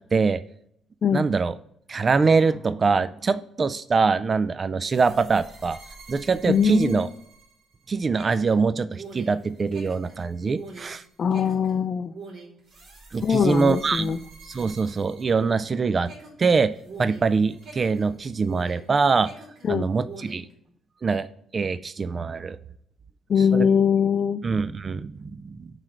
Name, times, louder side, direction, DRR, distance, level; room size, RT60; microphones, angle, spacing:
voice 1, 1.1-1.6 1.9-5.8 6.1-7.1 7.9-11.0 13.1-14.1 14.5-16.1 16.4-16.7 17.0-19.3 19.7-20.5 21.0-21.3 21.5-22.6 23.4-23.7 24.4-25.7, right 4 dB, 35° right, 14 dB, 0.3 m, -23 dB
sound 1, 4.8-15.7 16.0-18.9 19.2-20.5, right 3 dB, 65° right, 2.8 m, -45 dB
voice 2, 6.5-7.0 11.2-12.1 13.2-14.2 19.6-19.9 23.3-24.4, left 7 dB, 50° left, 7 dB, 0.4 m, -22 dB
7.5 x 3.3 x 6.2 m, 0.70 s
cardioid pair, 90°, 0 cm